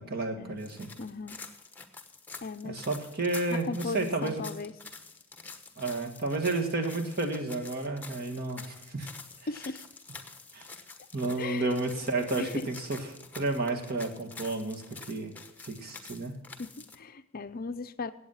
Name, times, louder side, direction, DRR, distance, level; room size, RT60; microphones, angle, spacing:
voice 1, 0.0-0.9 2.6-4.4 5.8-9.1 10.5-10.7 11.1-13.0 13.3-15.4 15.6-16.3, right 2 dB, 45° right, 3 dB, 1.8 m, -31 dB
sound 1, 0.6-17.0, left 4 dB, 10° left, 1.1 m, -47 dB
voice 2, 1.0-1.4 2.4-2.8 3.5-4.7 9.5-9.9 11.4-11.7 12.4-12.7 16.6-18.1, left 4 dB, 45° left, 11 dB, 0.5 m, -37 dB
15.5 x 8.6 x 5.6 m, 0.91 s
head